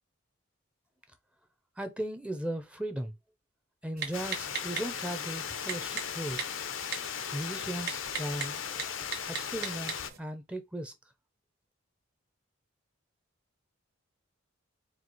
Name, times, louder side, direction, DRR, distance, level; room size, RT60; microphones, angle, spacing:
voice 1, 1.8-3.1 3.8-6.5 7.3-8.6 9.3-10.9, right 1 dB, 5° right, 0.5 m, -37 dB
Typing, 4.0-10.2, right 6 dB, 50° right, 1.1 m, -40 dB
Water, 4.1-10.1, left 8 dB, 70° left, 0.6 m, -37 dB
4.6 x 2.4 x 3.9 m
head